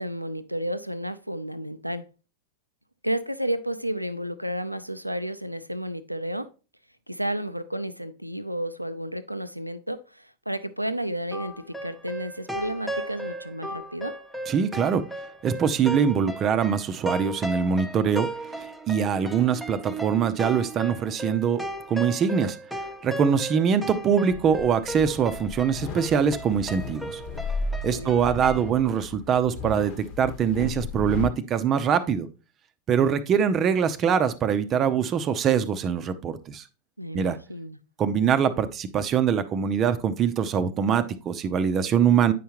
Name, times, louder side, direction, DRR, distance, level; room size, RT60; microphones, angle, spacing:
voice 1, 0.0-2.1 3.0-6.5 7.1-14.1 27.9-28.2 37.0-37.8, right 1 dB, 90° right, 0.4 m, -32 dB
sound 1, 11.3-28.7, right 1 dB, ahead, 0.9 m, -36 dB
voice 2, 14.5-15.0 15.4-18.6 18.9-21.6 21.9-22.6 23.0-27.2 27.8-32.3 32.9-36.6 37.1-37.4 38.0-42.3, right 7 dB, 30° right, 0.6 m, -23 dB
sound 2, 24.3-31.3, left 4 dB, 45° left, 1.2 m, -35 dB
9.1 x 5.6 x 2.9 m
figure-of-eight pair, 90°, 0 cm